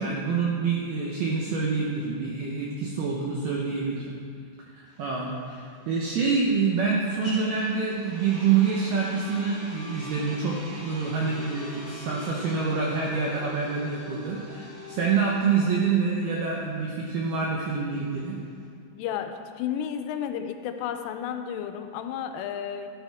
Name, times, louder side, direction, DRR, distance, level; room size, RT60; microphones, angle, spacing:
voice 1, 0.0-4.1 4.7-18.4, right 5 dB, 80° right, -3 dB, 2.2 m, -27 dB
sound 1, 4.9-18.7, left 1 dB, 20° left, 2.4 m, -44 dB
voice 2, 18.9-22.9, left 9 dB, 85° left, 7 dB, 3.1 m, -32 dB
13.0 x 11.5 x 3.5 m, 2.2 s
omnidirectional pair, 5.8 m